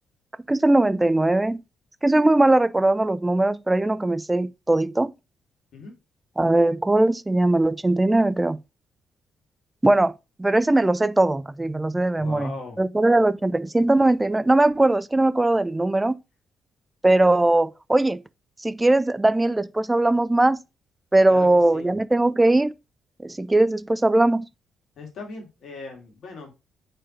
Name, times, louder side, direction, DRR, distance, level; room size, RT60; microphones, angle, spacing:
voice 1, 0.5-1.6 2.0-5.1 6.4-8.6 9.8-10.1 10.4-12.5 12.8-16.2 17.0-18.2 18.6-20.6 21.1-22.7 23.2-24.5, right 2 dB, 15° right, 0.5 m, -20 dB
voice 2, 12.2-12.8 21.3-21.9 25.0-26.5, left 3 dB, 60° left, 2.2 m, -39 dB
4.9 x 4.5 x 4.2 m
hypercardioid pair, 40°, 0 cm